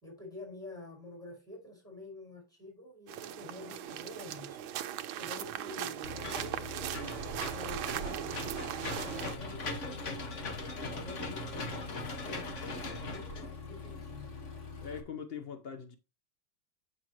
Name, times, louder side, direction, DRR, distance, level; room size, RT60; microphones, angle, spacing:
voice 1, 0.0-4.6 5.2-10.3 10.9-14.4, left 2 dB, ahead, 5.1 m, -49 dB
sound 1, 3.1-9.3, right 11 dB, 80° right, 1.5 m, -39 dB
Engine / Mechanisms, 6.0-15.0, left 2 dB, 40° left, 1.5 m, -40 dB
voice 2, 14.8-16.0, left 6 dB, 75° left, 0.5 m, -42 dB
8.5 x 6.7 x 3.0 m
omnidirectional pair, 2.2 m